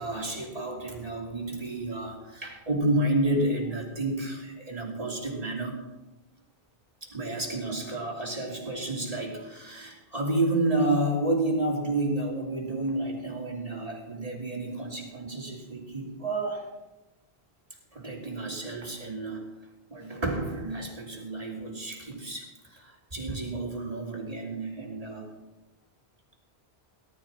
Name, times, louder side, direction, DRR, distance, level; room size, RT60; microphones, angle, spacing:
voice 1, 0.0-5.8 7.0-16.7 17.9-19.5 19.9-25.3, right 2 dB, 35° right, 0 dB, 2.9 m, -30 dB
18.5 x 12.5 x 4.3 m, 1.1 s
omnidirectional pair, 1.1 m